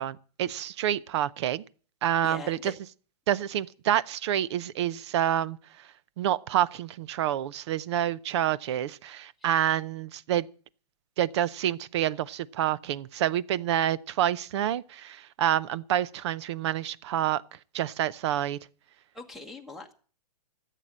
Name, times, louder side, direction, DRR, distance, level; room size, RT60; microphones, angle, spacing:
voice 1, 0.0-1.6 2.0-2.7 3.3-5.6 6.2-10.5 11.2-17.4 17.7-18.6, right 11 dB, 40° right, 0.6 m, -28 dB
voice 2, 2.2-2.7 9.4-9.5 19.1-19.9, left 3 dB, ahead, 1.3 m, -42 dB
14.0 x 8.3 x 7.4 m
hypercardioid pair, 150°, 21 cm